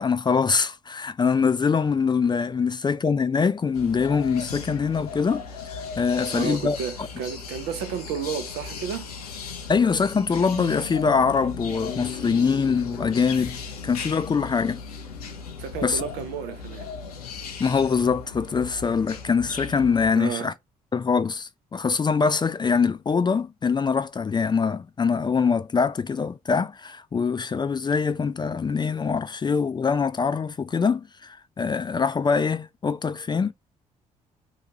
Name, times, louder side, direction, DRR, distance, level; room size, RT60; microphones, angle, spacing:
voice 1, 0.0-7.1 9.7-13.6 13.8-14.8 15.8-16.0 17.6-20.5 20.9-33.5, left 5 dB, 25° left, 0.4 m, -23 dB
sound 1, 3.7-20.1, left 5 dB, 90° left, 0.4 m, -37 dB
voice 2, 6.3-9.1 15.6-16.9 20.1-20.5, right 7 dB, 70° right, 0.6 m, -32 dB
2.7 x 2.3 x 2.7 m
hypercardioid pair, 45°, 19 cm